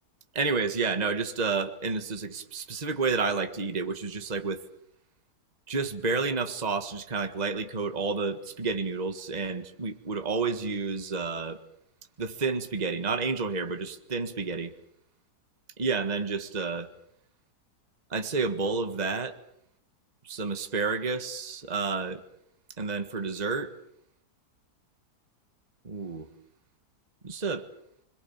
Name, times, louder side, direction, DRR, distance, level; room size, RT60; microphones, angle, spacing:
voice 1, 0.3-4.6 5.7-11.6 12.2-14.7 15.8-16.9 18.1-19.4 20.2-22.2 22.8-23.7 25.8-26.3 27.2-27.7, right 4 dB, 25° right, 1.6 m, -30 dB
29.0 x 22.5 x 7.3 m
omnidirectional pair, 1.8 m